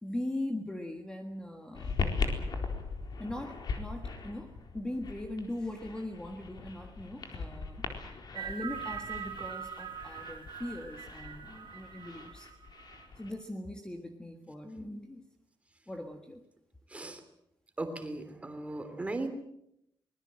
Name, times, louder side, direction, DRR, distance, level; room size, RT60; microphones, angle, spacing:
voice 1, 0.0-2.0 3.2-7.9 8.3-12.5 13.2-15.2 15.9-16.4, left 1 dB, 10° left, 4 dB, 1.6 m, -40 dB
sound 1, 1.7-13.3, left 4 dB, 55° left, 4.2 m, -39 dB
sound 2, 8.3-13.1, right 8 dB, 80° right, 3.8 m, -42 dB
voice 2, 16.9-17.2 17.8-19.3, right 2 dB, 15° right, 8 dB, 3.1 m, -37 dB
24.5 x 21.0 x 7.7 m, 0.77 s
wide cardioid pair, 175°, 9 cm